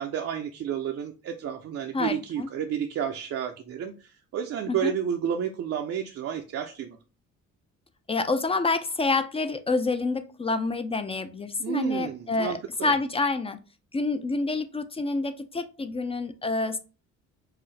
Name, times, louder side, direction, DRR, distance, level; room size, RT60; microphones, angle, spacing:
voice 1, 0.0-7.0 11.6-12.9, right 8 dB, 55° right, 4 dB, 0.5 m, -31 dB
voice 2, 1.9-2.5 4.7-4.9 8.1-13.6 13.9-16.8, left 3 dB, 20° left, 10 dB, 0.3 m, -28 dB
4.7 x 2.0 x 3.1 m, 0.34 s
cardioid pair, 90°, 30 cm